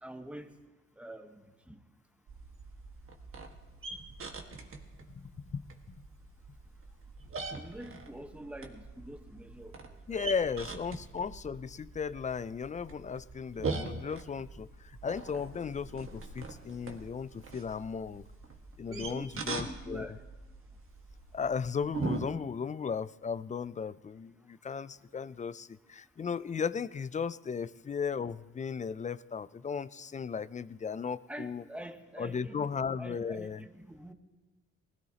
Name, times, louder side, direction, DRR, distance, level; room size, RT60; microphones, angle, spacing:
voice 1, 0.0-0.5 1.0-1.4 1.7-1.8 7.5-9.8 10.1-10.2 18.9-20.2 31.3-32.7 33.0-34.1, right 1 dB, 5° right, 7 dB, 1.2 m, -45 dB
sound 1, 2.3-22.2, right 3 dB, 45° right, 1.6 m, -42 dB
voice 2, 5.1-5.7 10.1-18.2 18.8-20.2 21.3-31.6 32.2-33.6, left 6 dB, 25° left, 16 dB, 0.4 m, -36 dB
20.0 x 16.5 x 2.9 m, 1.2 s
cardioid pair, 90°, 30 cm